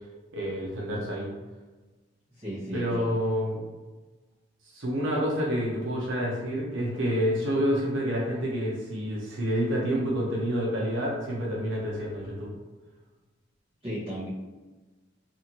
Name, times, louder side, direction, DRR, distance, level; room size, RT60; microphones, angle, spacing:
voice 1, 0.3-1.3 2.7-3.6 4.7-12.5, equal, 90° right, -3 dB, 0.7 m, -28 dB
voice 2, 2.3-3.0 13.8-14.3, equal, 30° right, -12 dB, 0.9 m, -34 dB
2.7 x 2.5 x 2.9 m, 1.2 s
head